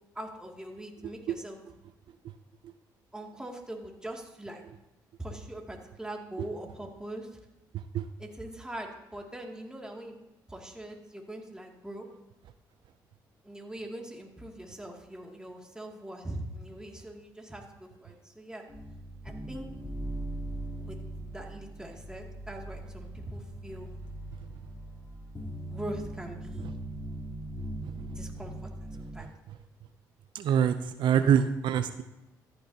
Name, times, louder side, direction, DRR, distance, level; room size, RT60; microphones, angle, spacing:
voice 1, 0.1-1.6 3.1-4.6 5.2-7.3 8.2-10.1 10.5-12.1 13.4-18.6 19.2-19.7 20.8-21.0 21.3-23.9 25.5-26.7 28.1-28.5 28.8-29.3, right 1 dB, 10° right, 1 dB, 2.3 m, -42 dB
sound 1, 18.7-29.2, right 1 dB, 30° left, 3.3 m, -40 dB
voice 2, 30.3-32.0, right 8 dB, 70° right, 10 dB, 0.5 m, -25 dB
14.0 x 9.9 x 2.8 m, 0.98 s
supercardioid pair, 65°, 8 cm